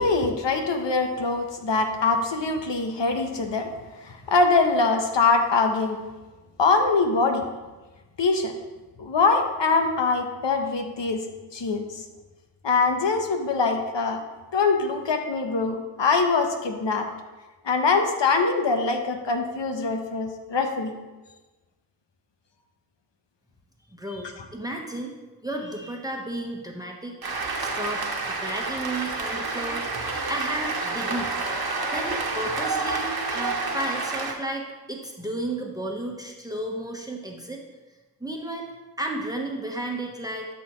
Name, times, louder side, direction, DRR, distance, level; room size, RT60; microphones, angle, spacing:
voice 1, 0.0-3.7 4.0-6.0 6.6-7.4 8.2-8.5 9.0-11.2 11.5-12.0 12.6-14.2 14.5-17.1 17.6-21.0 24.1-24.2, left 4 dB, 80° left, 5 dB, 1.1 m, -23 dB
voice 2, 23.9-25.1 25.4-27.1 27.6-29.8 30.3-31.4 31.9-37.6 38.2-38.7 39.0-40.5, right 1 dB, 10° right, 1 dB, 1.2 m, -33 dB
Cheering / Applause, 27.2-34.3, right 3 dB, 60° right, 1.3 m, -29 dB
12.5 x 6.2 x 3.1 m, 1.2 s
cardioid pair, 50°, 43 cm